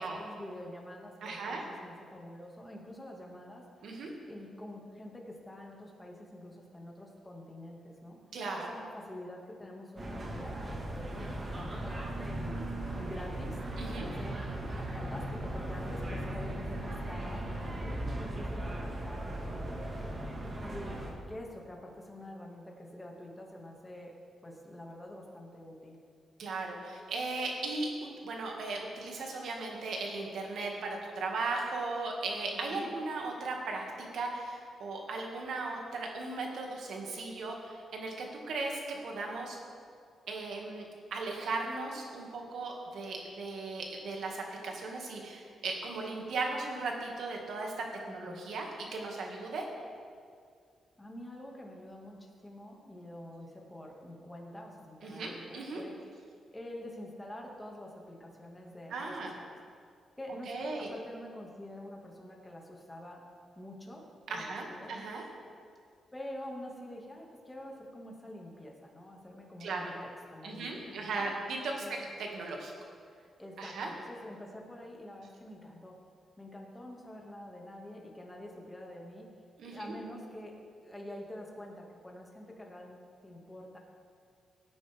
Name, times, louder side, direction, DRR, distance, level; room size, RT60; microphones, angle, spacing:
voice 1, 0.0-3.9 4.3-8.2 8.5-12.6 12.9-13.6 13.9-14.4 14.9-20.2 20.6-21.0 21.3-24.1 24.4-26.0 32.5-32.9 48.1-48.4 51.0-56.1 56.5-59.5 60.2-63.3 63.6-65.0 66.1-72.1 73.4-76.0 76.4-79.3 79.7-80.5 80.8-83.8, left 1 dB, 15° left, -1 dB, 2.1 m, -47 dB
voice 2, 1.2-1.6 3.8-4.1 8.3-8.7 13.8-14.1 26.4-33.8 34.1-39.6 40.3-49.6 55.0-55.8 58.9-59.3 60.5-60.9 64.3-65.2 69.6-69.8 70.4-72.0 72.3-72.7 73.6-73.9 79.6-79.9, right 3 dB, 75° right, 0 dB, 2.1 m, -37 dB
sound 1, 10.0-21.1, right 1 dB, 35° right, 2.0 m, -38 dB
17.5 x 9.4 x 3.6 m, 2.2 s
cardioid pair, 100°, 0 cm